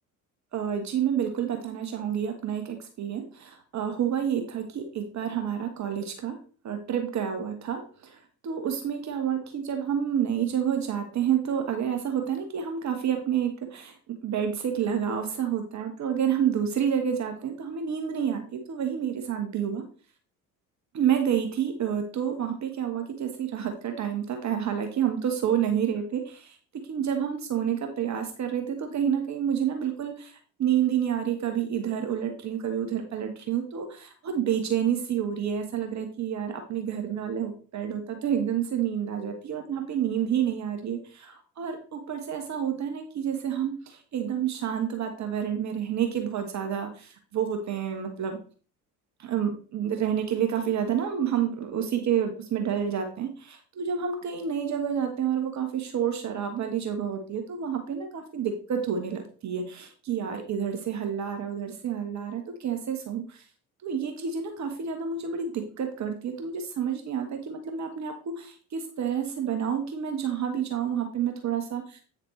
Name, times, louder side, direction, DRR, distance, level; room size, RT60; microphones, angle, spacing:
voice 1, 0.5-6.4 6.6-13.9 14.2-19.8 20.9-26.6 26.9-48.4 49.2-63.4 63.8-72.0, right 8 dB, 35° right, 5 dB, 1.4 m, -29 dB
8.8 x 6.6 x 3.2 m, 0.40 s
figure-of-eight pair, 60°, 46 cm